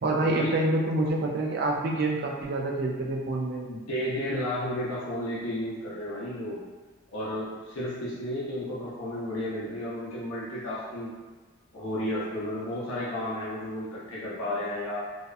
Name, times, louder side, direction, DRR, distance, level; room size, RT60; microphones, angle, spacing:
voice 1, 0.0-3.7, right 2 dB, 45° right, -1 dB, 0.3 m, -27 dB
voice 2, 3.6-6.6 7.1-11.1 11.7-15.1, left 1 dB, 70° left, -8 dB, 0.6 m, -32 dB
2.6 x 2.2 x 2.4 m, 1.3 s
head